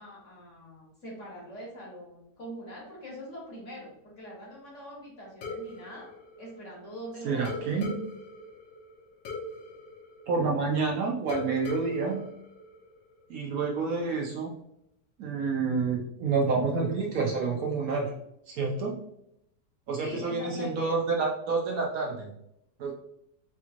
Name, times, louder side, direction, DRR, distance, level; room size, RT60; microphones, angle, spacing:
voice 1, 0.0-6.1 6.4-7.8 20.0-21.0, equal, 50° left, -4 dB, 1.5 m, -43 dB
sound 1, 5.4-7.0 7.5-10.8 11.3-13.3, left 2 dB, 80° left, 1.5 m, -41 dB
voice 2, 7.2-7.9 10.3-12.2 13.3-14.5 15.2-18.1 18.5-19.0 19.9-22.3 22.8-22.9, right 4 dB, 70° right, -1 dB, 0.9 m, -28 dB
4.3 x 3.0 x 2.4 m, 0.79 s
omnidirectional pair, 1.8 m